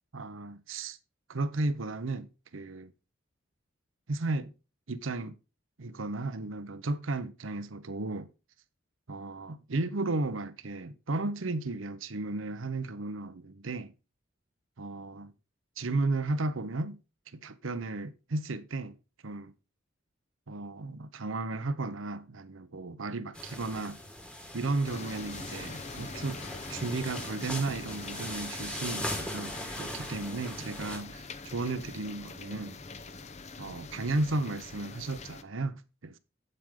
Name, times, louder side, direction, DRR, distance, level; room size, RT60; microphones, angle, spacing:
voice 1, 0.1-1.0 1.3-2.9 4.1-4.5 4.9-5.4 5.8-8.3 9.1-13.9 14.8-15.3 15.8-17.0 17.3-19.0 19.2-19.5 20.5-24.0 24.5-26.4 26.7-32.8 33.6-36.2, right 2 dB, 85° right, 0.8 m, -34 dB
sound 1, 23.3-31.0, left 1 dB, 5° left, 1.5 m, -40 dB
sound 2, 24.8-35.4, left 3 dB, 35° left, 0.7 m, -44 dB
8.8 x 7.8 x 3.7 m
head